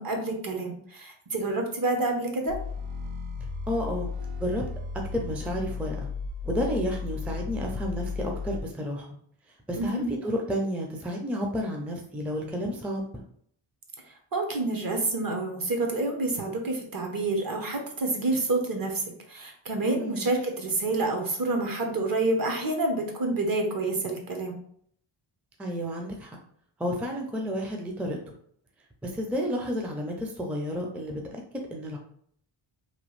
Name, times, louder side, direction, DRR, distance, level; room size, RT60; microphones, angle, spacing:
voice 1, 0.0-2.6 9.8-10.1 14.3-19.0 19.3-24.6, right 2 dB, 45° right, 3 dB, 0.8 m, -28 dB
sound 1, 2.5-8.6, left 5 dB, 80° right, 0.6 m, -34 dB
voice 2, 3.7-4.1 4.4-4.6 5.1-6.1 6.4-9.1 9.7-13.2 20.0-20.3 25.6-26.4 26.8-28.2 29.0-31.4 31.7-32.0, equal, 5° right, 0 dB, 0.4 m, -31 dB
2.9 x 2.3 x 3.1 m, 0.63 s
cardioid pair, 85°, 50 cm